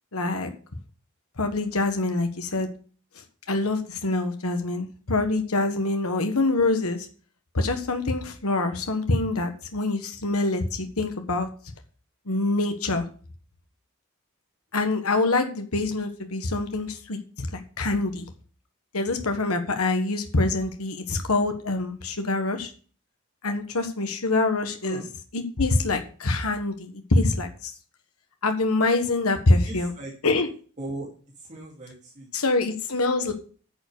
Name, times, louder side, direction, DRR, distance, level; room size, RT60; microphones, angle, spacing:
voice 1, 0.1-0.5 1.4-2.7 3.2-7.1 7.5-11.5 12.3-13.0 14.7-18.3 18.9-22.7 23.4-25.0 25.3-27.7 28.4-29.9 30.2-30.5 32.3-33.3, left 2 dB, 80° left, 6 dB, 1.5 m, -25 dB
voice 2, 29.6-30.1 30.8-31.1 31.4-32.3, right 2 dB, 35° right, -4 dB, 2.6 m, -38 dB
9.9 x 7.1 x 6.8 m, 0.40 s
head